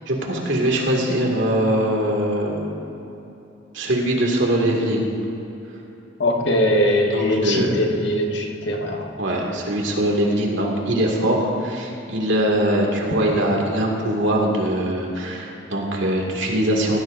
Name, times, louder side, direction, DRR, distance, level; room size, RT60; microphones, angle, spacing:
voice 1, 0.1-3.0 3.7-5.1 7.1-7.9 9.2-17.0, right 1 dB, 80° right, -1 dB, 2.4 m, -22 dB
voice 2, 6.2-9.1, left 1 dB, 65° left, 1 dB, 1.5 m, -21 dB
18.5 x 15.5 x 2.7 m, 3.0 s
head